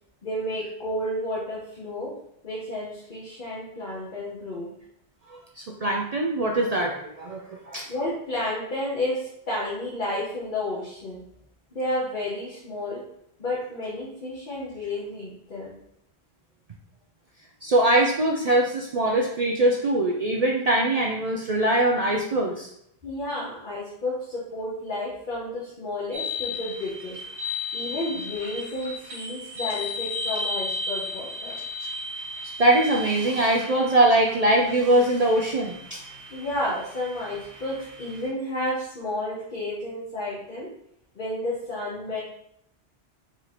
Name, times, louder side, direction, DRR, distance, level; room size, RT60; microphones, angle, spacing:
voice 1, 0.2-2.1 2.4-4.7 7.9-11.2 11.7-13.0 13.4-15.8 23.0-27.2 27.7-31.6 35.0-35.1 36.3-40.7 41.1-42.2, left 1 dB, 50° left, -6 dB, 1.2 m, -31 dB
voice 2, 5.3-7.9 17.6-22.7 32.6-36.0, right 1 dB, 50° right, -1 dB, 0.5 m, -22 dB
sound 1, 26.1-38.3, left 2 dB, 80° right, 1.2 m, -35 dB
4.5 x 2.8 x 4.1 m, 0.74 s
omnidirectional pair, 1.1 m